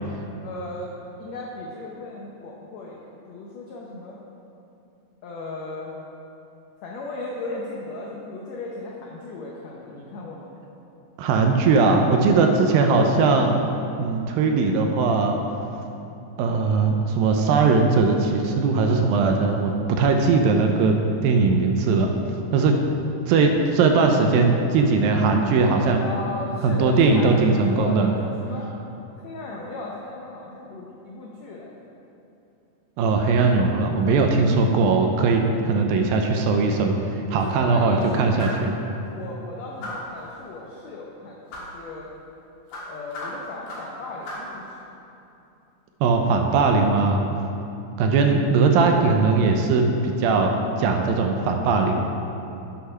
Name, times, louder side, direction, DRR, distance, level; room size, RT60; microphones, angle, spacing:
voice 1, 0.4-0.9 1.2-4.2 5.2-5.9 6.8-10.5 26.0-28.7 29.2-31.9 37.4-38.4 39.1-42.1 42.8-44.8, left 2 dB, 90° left, -2 dB, 1.5 m, -36 dB
voice 2, 11.2-13.6 14.0-15.4 16.4-22.1 22.5-22.8 23.3-26.0 26.6-28.1 33.0-37.0 37.3-38.7 46.0-47.2 48.0-50.5 50.8-51.9, right 4 dB, 80° right, 4 dB, 2.3 m, -19 dB
sound 1, 38.4-38.7 39.8-40.2 41.5-41.8 42.7-44.0 44.3-44.6, left 1 dB, 65° left, 2.7 m, -35 dB
8.6 x 5.9 x 5.5 m, 2.8 s
omnidirectional pair, 4.2 m